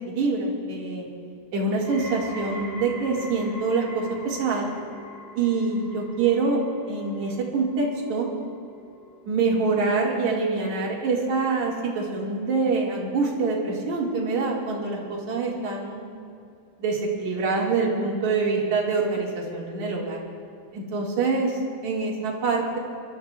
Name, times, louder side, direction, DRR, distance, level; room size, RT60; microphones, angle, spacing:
voice 1, 0.1-1.1 1.5-4.7 5.4-6.6 6.9-8.3 9.3-16.1 16.8-20.2 20.7-22.8, right 4 dB, 55° right, -3 dB, 3.0 m, -25 dB
sound 1, 1.8-12.9 13.3-13.8 14.5-14.6, left 1 dB, 55° left, 4.1 m, -44 dB
29.5 x 13.5 x 2.4 m, 2.4 s
omnidirectional pair, 4.6 m